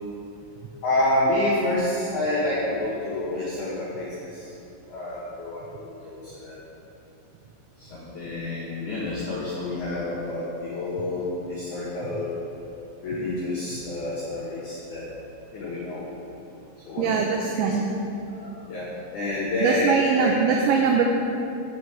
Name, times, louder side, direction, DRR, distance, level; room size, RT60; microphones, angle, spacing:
voice 1, 0.8-4.5 4.9-6.6 7.8-12.4 13.0-15.1 15.5-16.0 16.8-17.2 17.5-17.7 18.3-20.6, left 1 dB, 60° left, -8 dB, 2.3 m, -28 dB
voice 2, 17.0-17.8 19.6-21.0, right 6 dB, 80° right, 2 dB, 2.7 m, -22 dB
9.4 x 5.4 x 7.7 m, 2.9 s
omnidirectional pair, 5.9 m